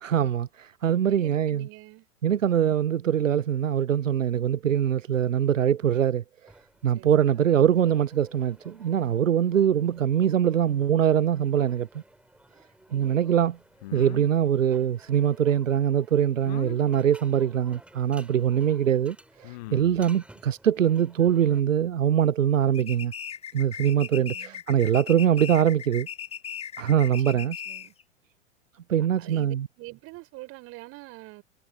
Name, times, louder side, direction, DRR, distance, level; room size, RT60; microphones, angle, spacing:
voice 1, 0.0-1.7 2.2-6.2 6.8-11.9 12.9-13.6 13.9-23.1 23.5-26.1 26.8-27.6 28.9-29.7, right 9 dB, 85° right, 0.5 m, -23 dB
voice 2, 1.0-2.1 6.9-7.4 9.5-9.6 12.9-13.3 19.9-20.3 24.0-24.6 27.2-27.9 29.0-31.4, right 21 dB, 35° right, 5.6 m, -46 dB
sound 1, 6.5-21.6, right 1 dB, 5° right, 3.6 m, -55 dB
sound 2, 13.8-14.3 16.5-16.8 18.2-18.3 19.4-20.1, left 20 dB, 35° left, 0.4 m, -40 dB
sound 3, 22.7-28.0, left 8 dB, 15° left, 1.4 m, -38 dB
figure-of-eight pair, 95°, 38 cm